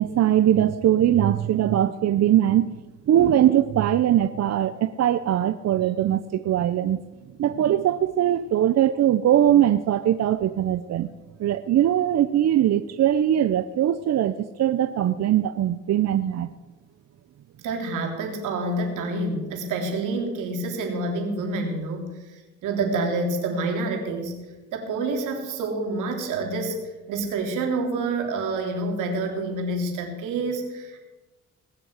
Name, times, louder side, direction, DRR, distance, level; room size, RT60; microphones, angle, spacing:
voice 1, 0.0-2.8 3.1-7.0 7.4-11.1 11.4-16.5, right 11 dB, 60° right, 11 dB, 0.7 m, -21 dB
voice 2, 17.6-24.4 24.7-26.8 27.1-31.1, right 2 dB, 90° right, 2 dB, 3.5 m, -28 dB
19.0 x 7.6 x 8.2 m, 1.1 s
cardioid pair, 90°, 30 cm